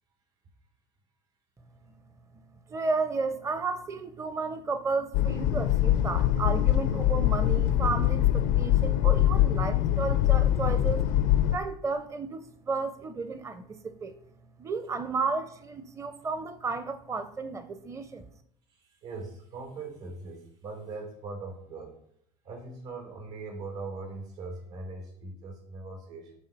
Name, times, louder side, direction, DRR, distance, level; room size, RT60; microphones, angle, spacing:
voice 1, 2.7-11.1 11.5-14.1 14.6-18.3, right 4 dB, 20° right, 11 dB, 0.6 m, -33 dB
sound 1, 5.1-11.6, left 12 dB, 85° left, 0.6 m, -23 dB
voice 2, 18.7-22.0 22.4-26.4, right 3 dB, 85° right, 2 dB, 3.6 m, -40 dB
9.1 x 3.9 x 5.4 m, 0.72 s
supercardioid pair, 100°, 16 cm